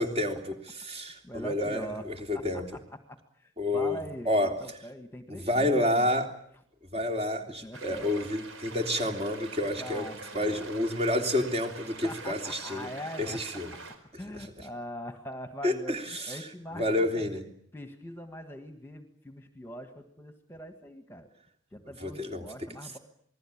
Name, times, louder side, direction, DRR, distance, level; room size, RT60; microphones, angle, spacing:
voice 1, 0.0-2.7 3.6-4.0 4.2-4.6 5.3-6.3 6.9-10.1 10.3-12.9 13.2-13.7 14.1-14.7 15.6-16.4 16.7-17.4 22.0-22.5, left 1 dB, 30° right, 4 dB, 3.3 m, -29 dB
voice 2, 1.2-2.0 2.3-2.4 3.1-6.1 7.6-8.1 9.8-10.7 12.0-13.4 13.7-13.8 14.2-17.4 17.7-21.3 21.7-23.0, equal, 10° left, 7 dB, 1.8 m, -42 dB
sound 1, 7.7-14.0, right 3 dB, 75° right, 4.4 m, -45 dB
28.0 x 20.5 x 8.8 m, 0.65 s
head